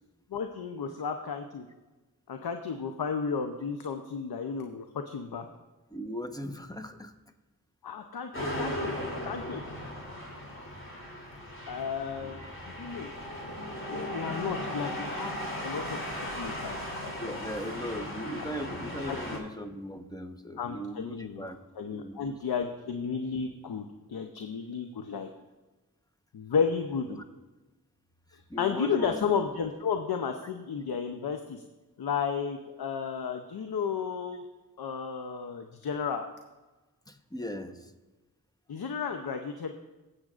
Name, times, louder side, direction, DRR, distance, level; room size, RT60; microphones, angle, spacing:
voice 1, 0.3-1.7 2.3-5.5 7.8-8.9 9.2-9.6 11.7-13.1 13.9-16.0 16.4-17.1 17.6-17.7 19.1-19.4 20.6-25.3 26.3-27.2 28.3-31.6 32.0-34.4 34.8-36.3 38.7-39.7, left 6 dB, 80° left, 6 dB, 0.7 m, -33 dB
voice 2, 5.9-7.1 8.4-8.6 12.2-12.5 17.1-21.6 21.9-22.3 28.5-29.2 37.1-37.9, equal, 10° left, 7 dB, 1.0 m, -38 dB
sound 1, 8.3-19.4, equal, 35° left, 2.9 m, -37 dB
16.0 x 7.9 x 2.5 m, 1.1 s
cardioid pair, 40°, 37 cm